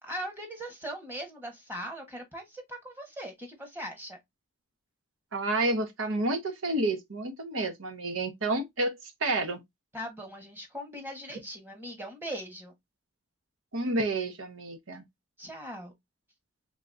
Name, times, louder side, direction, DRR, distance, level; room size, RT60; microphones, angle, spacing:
voice 1, 0.0-4.2 9.9-12.7 15.4-15.9, equal, 10° right, 1.2 m, -40 dB
voice 2, 5.3-8.9 9.2-9.6 13.7-15.0, right 2 dB, 80° right, 1.1 m, -29 dB
4.0 x 3.6 x 2.6 m
head